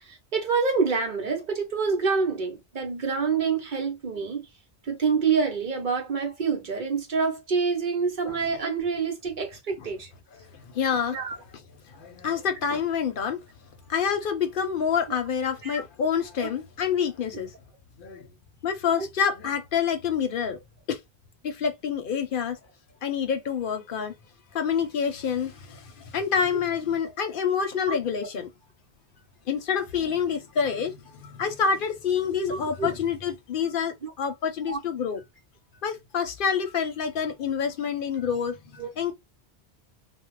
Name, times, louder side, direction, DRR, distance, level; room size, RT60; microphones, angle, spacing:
voice 1, 0.1-4.4 4.9-10.1 11.1-11.4 15.6-15.8 16.4-16.5 18.9-19.1 24.0-24.1 27.9-28.0 32.4-32.9 34.7-34.8 38.8-38.9, right 5 dB, 50° right, 0.9 m, -27 dB
voice 2, 10.3-11.3 11.5-11.6 11.9-13.4 13.9-17.5 18.0-18.3 18.6-20.6 20.9-21.0 21.4-22.6 23.0-24.1 24.5-28.5 29.5-35.2 35.8-39.1, left 7 dB, 60° left, 0.7 m, -27 dB
2.3 x 2.1 x 3.0 m
omnidirectional pair, 1.1 m